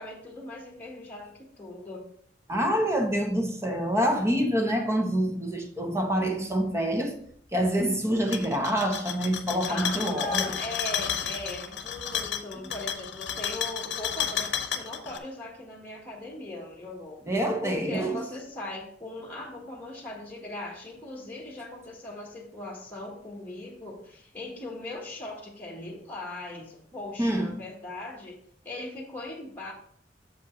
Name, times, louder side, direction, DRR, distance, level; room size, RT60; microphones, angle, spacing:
voice 1, 0.0-2.1 9.6-17.2 17.6-28.4 28.6-29.7, left 2 dB, 10° left, 1.5 m, -39 dB
voice 2, 2.5-7.2 7.5-10.5 17.3-18.2 27.2-27.6, equal, 15° right, 0.9 m, -26 dB
sound 1, 8.2-15.2, left 8 dB, 85° left, 0.7 m, -32 dB
7.2 x 5.2 x 3.9 m
head